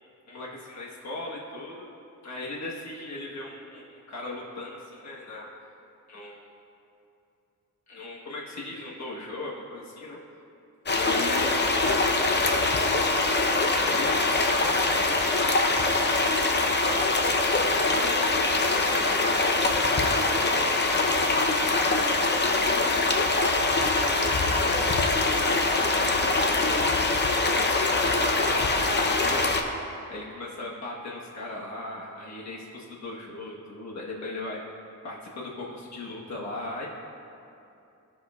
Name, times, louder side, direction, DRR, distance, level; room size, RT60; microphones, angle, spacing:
voice 1, 0.3-1.9 2.2-5.5 6.1-6.5 7.9-10.2 10.9-13.5 13.8-14.2 14.6-15.5 16.5-19.4 19.9-23.0 23.6-24.8 25.3-29.5 30.1-34.6 35.0-36.9, left 2 dB, 55° left, -4 dB, 1.3 m, -38 dB
sound 1, 10.9-29.6, left 2 dB, 30° left, 0.7 m, -23 dB
16.0 x 6.2 x 2.4 m, 2.7 s
wide cardioid pair, 110°, 34 cm